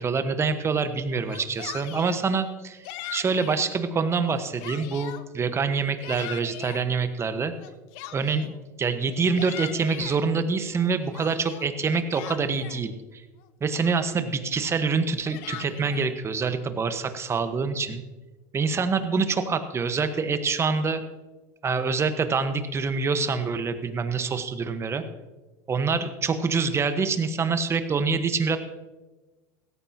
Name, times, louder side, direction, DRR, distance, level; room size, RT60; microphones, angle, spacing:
voice 1, 0.0-2.8 3.1-7.5 8.1-13.2 13.6-18.0 18.5-21.0 21.6-25.0 25.7-28.6, right 5 dB, 25° right, 9 dB, 1.3 m, -26 dB
Yell, 1.2-2.2 2.8-3.6 4.2-5.2 5.7-6.9 7.6-8.6 9.1-10.2 10.7-12.8 13.4-13.5 13.8-14.3 15.0-16.1, left 13 dB, 65° left, 0.8 m, -40 dB
16.5 x 14.0 x 2.9 m, 1.2 s
hypercardioid pair, 90°, 10 cm